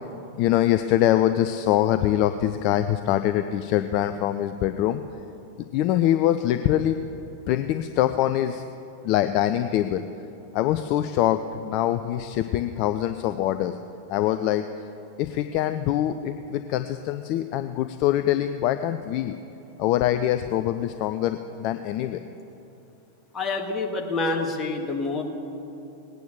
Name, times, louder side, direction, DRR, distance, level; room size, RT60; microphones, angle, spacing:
voice 1, 0.4-5.0 5.7-7.0 7.5-8.6 9.0-10.0 10.5-13.7 14.1-14.6 15.2-19.4 19.8-22.2, left 12 dB, 40° left, 9 dB, 0.5 m, -24 dB
voice 2, 23.3-25.2, left 3 dB, 20° left, 1 dB, 2.1 m, -27 dB
19.0 x 9.2 x 6.8 m, 2.8 s
figure-of-eight pair, 90°, 0 cm